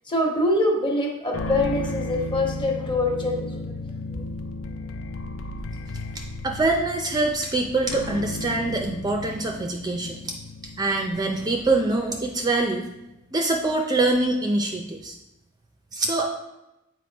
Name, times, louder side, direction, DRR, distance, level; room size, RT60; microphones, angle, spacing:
voice 1, 0.1-3.7, left 1 dB, 25° left, 0 dB, 1.1 m, -24 dB
sound 1, 1.3-12.7, left 1 dB, 90° left, 0.5 m, -35 dB
voice 2, 6.4-10.2 10.8-12.9 13.3-15.1 15.9-16.3, right 2 dB, 20° right, 2 dB, 0.4 m, -24 dB
7.7 x 4.6 x 3.4 m, 0.93 s
head